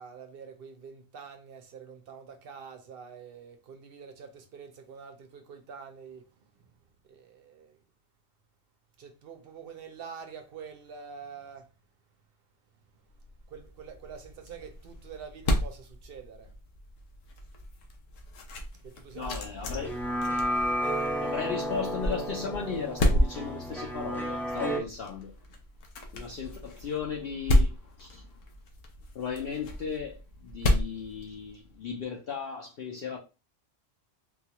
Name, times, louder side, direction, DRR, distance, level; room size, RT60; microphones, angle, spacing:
voice 1, 0.0-7.8 9.0-11.7 12.9-13.0 13.5-16.5 18.8-19.9, right 6 dB, 55° right, 0.7 m, -46 dB
sound 1, 13.2-31.9, left 1 dB, 85° left, 1.1 m, -32 dB
voice 2, 19.1-19.9 21.0-25.4 26.1-28.4 29.1-33.2, left 6 dB, 55° left, 0.8 m, -36 dB
sound 2, 19.7-24.8, equal, 5° left, 0.3 m, -32 dB
3.9 x 2.3 x 2.9 m
omnidirectional pair, 1.3 m